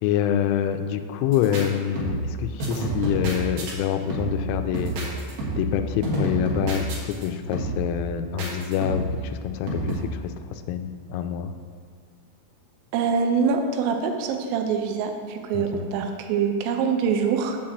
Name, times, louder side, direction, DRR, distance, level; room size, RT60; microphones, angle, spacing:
voice 1, 0.0-4.9 5.6-11.5 15.5-15.8, left 10 dB, 85° left, 8 dB, 3.1 m, -26 dB
sound 1, 1.3-1.6 2.0-2.3 2.6-3.7 4.1-4.5 4.7-5.8 6.0-7.3 7.5-7.9 8.4-9.2 9.7-10.0, right 2 dB, 60° right, 2.7 m, -28 dB
voice 2, 12.9-17.6, right 6 dB, 90° right, 4 dB, 3.2 m, -24 dB
7.5 x 4.8 x 7.2 m, 2.1 s
omnidirectional pair, 5.8 m